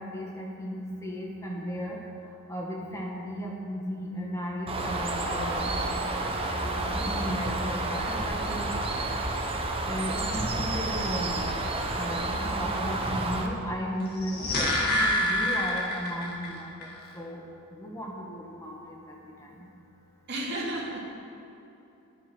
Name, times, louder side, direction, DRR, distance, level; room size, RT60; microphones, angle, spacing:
voice 1, 0.0-2.0 2.5-5.8 6.8-8.7 9.9-11.5 11.9-16.9 17.1-17.4 17.7-19.5, equal, 15° left, -2 dB, 1.7 m, -35 dB
Bird, 4.7-13.5, right 2 dB, 25° right, 0.9 m, -30 dB
sound 1, 14.1-16.5 16.8-16.9, left 1 dB, 45° left, 2.0 m, -26 dB
voice 2, 20.3-21.1, right 1 dB, 50° right, -4 dB, 2.3 m, -32 dB
10.0 x 9.1 x 6.2 m, 2.8 s
head